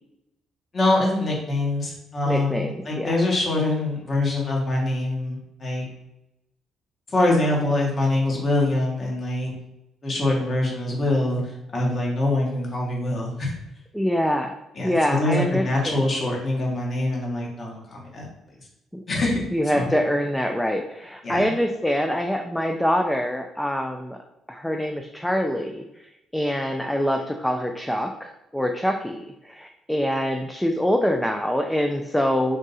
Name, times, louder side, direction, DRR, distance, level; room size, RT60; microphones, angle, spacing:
voice 1, 0.7-5.8 7.1-9.5 10.0-13.5 14.7-18.3 19.1-19.4 19.7-19.9 21.2-21.5, left 2 dB, 40° left, -2 dB, 1.4 m, -24 dB
voice 2, 2.2-3.1 13.9-14.6 14.8-16.1 18.9-19.0 19.5-24.2 24.5-32.6, equal, 5° left, 3 dB, 0.4 m, -25 dB
3.6 x 2.6 x 4.0 m, 0.89 s
supercardioid pair, 70°, 0 cm